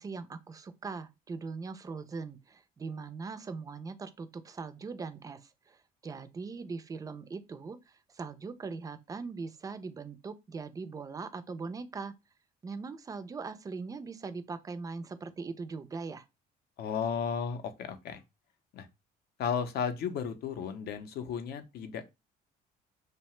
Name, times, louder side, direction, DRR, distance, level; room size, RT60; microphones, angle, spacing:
voice 1, 0.0-12.1 12.6-16.3, right 4 dB, 20° right, 0.4 m, -41 dB
voice 2, 16.8-18.2 18.7-18.9 19.4-22.0, left 7 dB, 70° left, 0.6 m, -34 dB
2.7 x 2.1 x 3.0 m
cardioid pair, 110°, 17 cm